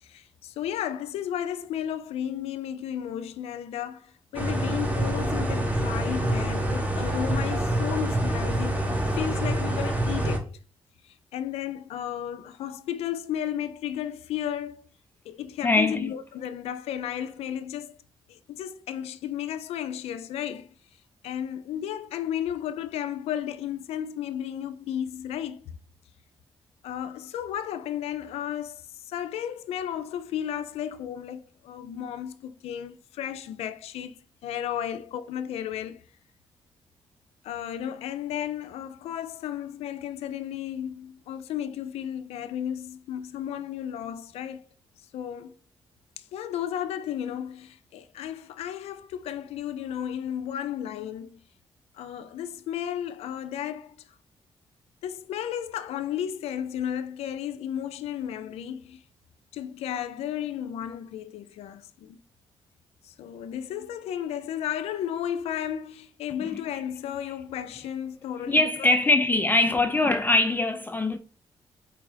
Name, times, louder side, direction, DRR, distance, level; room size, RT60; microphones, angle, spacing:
voice 1, 0.0-10.5 11.0-14.9 15.3-18.0 18.3-20.7 21.2-25.8 26.8-34.2 34.4-36.0 37.4-44.6 45.1-45.5 46.2-51.4 51.9-54.2 55.0-59.0 59.5-62.2 63.0-68.9, left 10 dB, 90° left, 0.4 m, -33 dB
sound 1, 4.3-10.4, right 1 dB, 15° right, 1.1 m, -26 dB
voice 2, 15.6-16.1 68.5-71.2, left 2 dB, 20° left, 0.4 m, -22 dB
4.6 x 2.4 x 4.8 m
cardioid pair, 65°, 10 cm